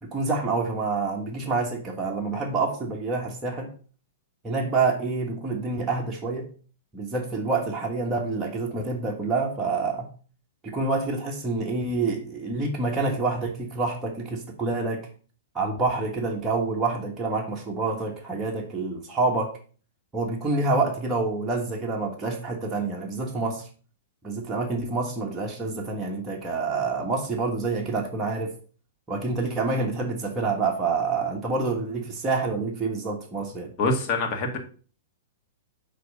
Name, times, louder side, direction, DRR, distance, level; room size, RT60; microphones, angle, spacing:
voice 1, 0.0-3.7 4.4-6.5 6.9-10.1 10.6-15.1 15.5-19.5 20.1-23.7 24.2-28.5 29.1-33.7, right 3 dB, 15° right, 1.2 m, -27 dB
voice 2, 33.8-34.6, left 3 dB, 40° left, 1.7 m, -25 dB
7.5 x 3.1 x 5.2 m
hypercardioid pair, 125°, 0 cm